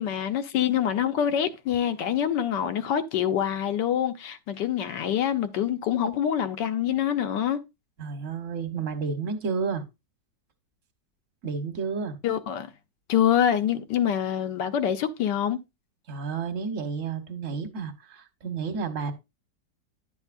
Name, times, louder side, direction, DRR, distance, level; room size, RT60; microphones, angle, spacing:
voice 1, 0.0-7.6 12.2-12.7 13.1-15.6, left 9 dB, 85° left, 1.4 m, -25 dB
voice 2, 8.0-9.8 11.4-12.2 16.1-19.1, right 5 dB, 50° right, 1.3 m, -31 dB
10.5 x 7.1 x 2.5 m
omnidirectional pair, 1.9 m